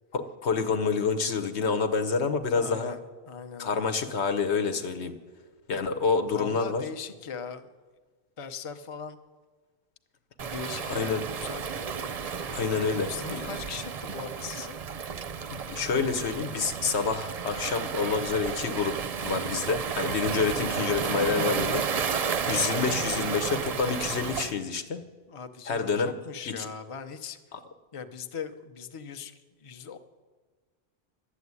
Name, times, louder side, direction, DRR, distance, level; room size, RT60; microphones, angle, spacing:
voice 1, 0.1-2.9 3.6-5.1 5.7-6.8 10.8-11.2 12.5-13.4 15.5-25.0 25.7-26.1 26.6-26.7, left 5 dB, 80° left, 7 dB, 1.3 m, -28 dB
voice 2, 2.5-3.9 6.3-7.7 8.4-9.2 10.4-11.7 12.0-12.4 13.1-14.8 25.3-27.4 27.9-30.0, left 6 dB, 35° left, 8 dB, 0.7 m, -40 dB
Waves surf, 10.4-24.5, right 6 dB, 45° right, 0.5 m, -32 dB
12.0 x 8.2 x 9.6 m, 1.3 s
omnidirectional pair, 1.1 m